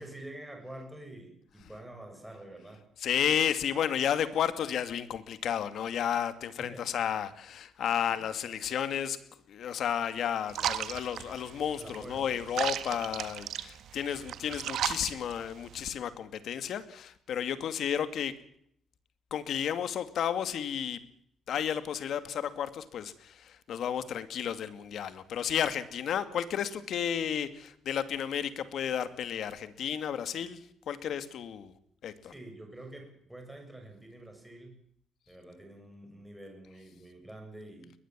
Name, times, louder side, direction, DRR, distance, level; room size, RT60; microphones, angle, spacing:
voice 1, 0.0-2.9 6.6-6.9 8.1-8.2 11.8-12.4 32.2-34.8 35.3-37.9, right 1 dB, 5° right, 7.0 m, -47 dB
voice 2, 3.0-9.2 9.5-18.3 19.3-21.0 21.5-30.6 30.9-31.7 32.0-32.3, left 9 dB, 65° left, 2.3 m, -32 dB
sound 1, 10.5-15.9, right 10 dB, 70° right, 1.8 m, -36 dB
21.5 x 20.5 x 7.5 m
cardioid pair, 155°, 0 cm